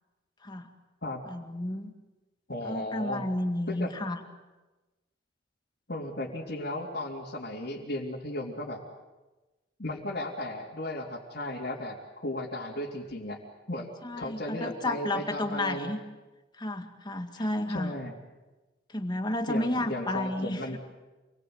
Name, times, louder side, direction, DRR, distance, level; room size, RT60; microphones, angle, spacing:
voice 1, 1.3-1.9 2.6-4.2 14.0-16.0 16.6-17.9 18.9-20.6, left 1 dB, 25° left, 6 dB, 2.1 m, -32 dB
voice 2, 2.5-3.2 3.7-3.9 5.9-8.8 9.8-13.4 13.7-13.9 14.2-15.9 17.4-18.1 19.5-20.8, left 1 dB, 55° left, -5 dB, 3.3 m, -35 dB
28.0 x 21.0 x 8.0 m, 1.1 s
head